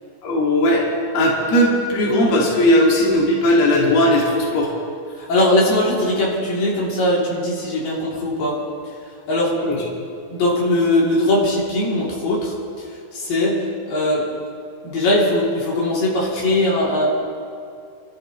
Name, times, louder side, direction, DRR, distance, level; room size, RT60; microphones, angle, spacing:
voice 1, 0.2-0.8 1.1-4.7 9.6-9.8, left 1 dB, 55° left, -4 dB, 3.5 m, -17 dB
voice 2, 5.2-8.6 8.8-8.9 9.3-9.6 10.3-14.3 14.8-17.1, left 1 dB, 85° left, -6 dB, 4.8 m, -20 dB
28.5 x 13.0 x 3.2 m, 2.3 s
omnidirectional pair, 3.9 m